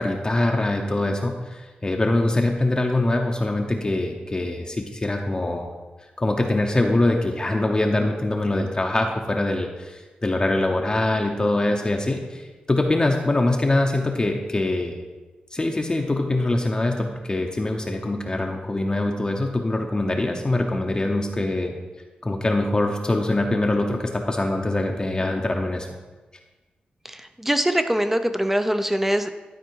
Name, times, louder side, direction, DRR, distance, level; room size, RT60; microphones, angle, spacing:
voice 1, 0.0-5.7 6.2-12.4 12.7-15.0 15.5-21.7 22.2-25.9, left 2 dB, 25° left, 2 dB, 0.7 m, -23 dB
voice 2, 27.0-29.3, right 1 dB, 10° right, 9 dB, 0.6 m, -23 dB
12.0 x 4.4 x 4.6 m, 1.2 s
wide cardioid pair, 90°, 3 cm